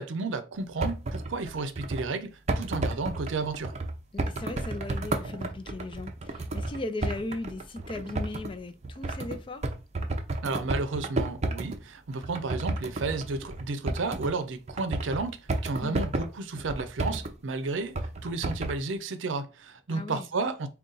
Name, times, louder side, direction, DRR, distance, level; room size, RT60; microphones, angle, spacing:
voice 1, 0.0-3.7 10.4-20.7, right 3 dB, 90° right, 0.5 m, -32 dB
sound 1, 0.5-2.1 2.5-11.8 12.1-14.4 14.7-17.3 17.9-18.8, right 2 dB, 35° right, 0.5 m, -32 dB
voice 2, 4.1-9.6 15.8-16.1 19.9-20.3, left 2 dB, 25° left, 0.4 m, -37 dB
3.9 x 2.3 x 3.8 m
head